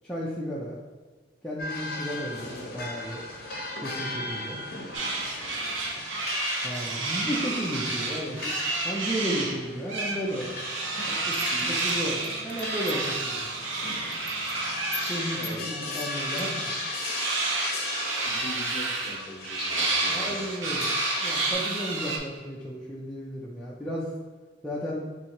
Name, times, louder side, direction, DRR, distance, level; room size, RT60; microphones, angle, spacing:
voice 1, 0.0-0.8 1.4-3.2 3.8-4.6 6.6-8.5 8.8-10.6 11.1-13.4 15.1-16.7 20.1-20.9 21.2-24.1 24.6-25.0, equal, 5° left, -7 dB, 0.5 m, -33 dB
sound 1, 1.6-21.5, left 2 dB, 50° left, 0.8 m, -37 dB
sound 2, 4.9-9.6 9.9-15.6 16.1-22.2, right 3 dB, 80° right, 0.8 m, -30 dB
sound 3, 11.3-13.2 13.5-13.8 14.1-14.5 14.9-15.2 15.4-15.6 15.9-16.4, left 10 dB, 70° left, 0.4 m, -41 dB
voice 2, 11.5-11.8 15.3-15.6 18.2-20.5, left 1 dB, 30° left, -1 dB, 1.0 m, -41 dB
4.1 x 2.8 x 4.4 m, 1.4 s
head